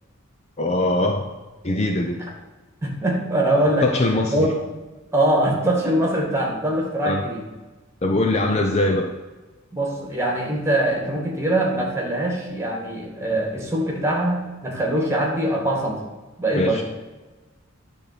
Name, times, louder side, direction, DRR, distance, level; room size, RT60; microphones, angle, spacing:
voice 1, 0.6-1.3 1.6-2.2 3.8-4.5 7.0-7.2 8.0-9.1 16.6-16.8, left 2 dB, 30° left, 3 dB, 0.6 m, -21 dB
voice 2, 2.8-3.9 4.3-4.5 4.7-4.8 5.1-7.4 9.7-16.0 16.4-16.8, right 1 dB, 15° right, -1 dB, 1.8 m, -22 dB
10.0 x 3.6 x 6.7 m, 1.2 s
head